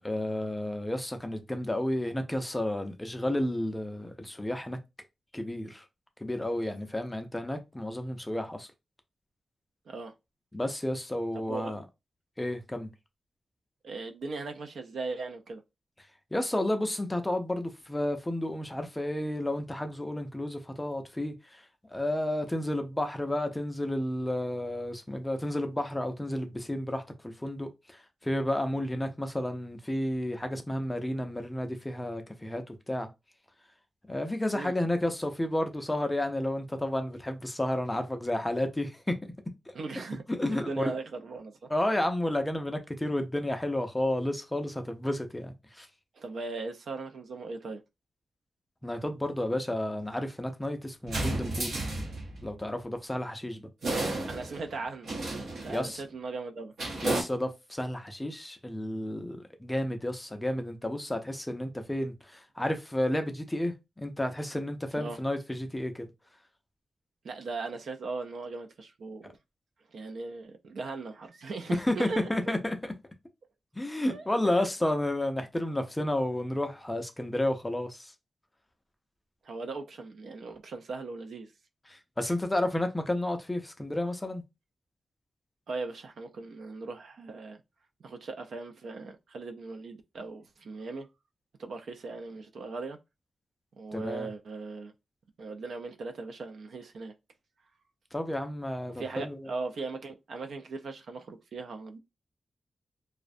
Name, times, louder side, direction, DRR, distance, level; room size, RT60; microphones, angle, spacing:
voice 1, 0.0-4.8 5.3-5.8 6.2-8.7 10.5-11.8 12.4-12.9 16.3-21.6 21.9-33.1 34.1-39.1 39.7-39.8 40.3-40.9 41.7-45.9 48.8-51.8 52.4-53.7 55.7-56.0 57.0-66.1 71.8-72.9 73.7-78.1 81.9-84.4 93.9-94.3 98.1-99.4, left 1 dB, 10° left, 0.3 m, -31 dB
voice 2, 13.8-15.6 34.5-34.7 39.7-40.2 40.5-41.7 46.2-47.8 53.8-55.1 55.6-56.7 65.0-65.2 67.2-69.3 69.9-72.3 74.1-74.2 79.4-81.5 85.7-87.6 88.0-91.1 91.6-93.0 93.8-94.9 95.4-97.1 98.9-102.0, right 3 dB, 70° right, 0.3 m, -38 dB
sound 1, 51.0-52.6 53.8-54.7 55.0-55.9 56.8-57.2, right 2 dB, 85° right, 0.8 m, -32 dB
2.4 x 2.1 x 2.5 m
wide cardioid pair, 160°, 0 cm